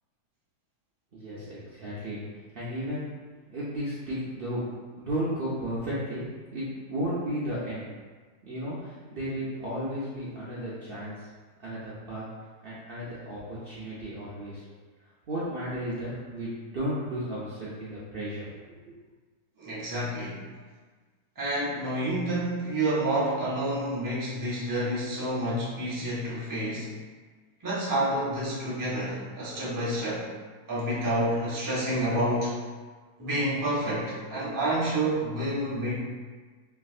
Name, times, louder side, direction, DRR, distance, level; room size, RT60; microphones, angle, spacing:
voice 1, 1.1-2.2 2.5-3.0 3.5-4.6 5.0-6.2 6.5-7.9 8.4-11.3 11.6-12.2 12.6-14.6 15.3-18.5 18.8-19.0, equal, 85° right, -9 dB, 0.5 m, -34 dB
voice 2, 19.6-20.4 21.4-26.9 27.6-30.3 30.7-32.5 33.2-36.0, right 1 dB, 20° right, -8 dB, 0.5 m, -29 dB
3.2 x 2.6 x 2.4 m, 1.4 s
omnidirectional pair, 1.7 m